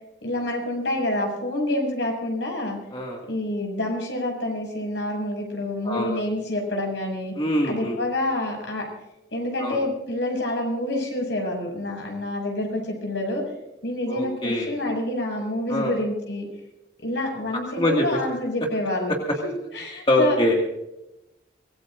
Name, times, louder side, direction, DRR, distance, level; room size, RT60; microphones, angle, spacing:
voice 1, 0.2-2.8 3.3-7.3 7.7-8.8 9.3-13.4 13.8-16.5 17.0-19.1 19.4-20.4, left 1 dB, 80° left, 1 dB, 6.6 m, -27 dB
voice 2, 5.8-6.2 7.4-8.0 9.6-9.8 14.1-14.7 15.7-15.9 17.8-18.2 20.1-20.5, left 1 dB, 30° left, -1 dB, 2.0 m, -23 dB
25.0 x 20.0 x 2.6 m, 0.92 s
head